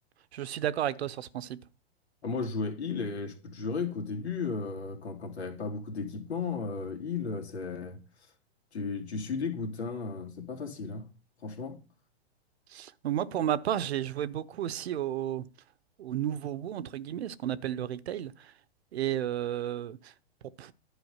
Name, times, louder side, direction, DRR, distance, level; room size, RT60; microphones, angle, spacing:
voice 1, 0.3-1.6 12.7-15.5 16.0-18.5 18.9-20.1 20.6-20.7, right 11 dB, 75° right, 0.9 m, -32 dB
voice 2, 2.2-8.0 8.7-11.1 11.4-11.8, left 4 dB, 90° left, 2.9 m, -34 dB
10.5 x 5.0 x 7.9 m
hypercardioid pair, 135°, 32 cm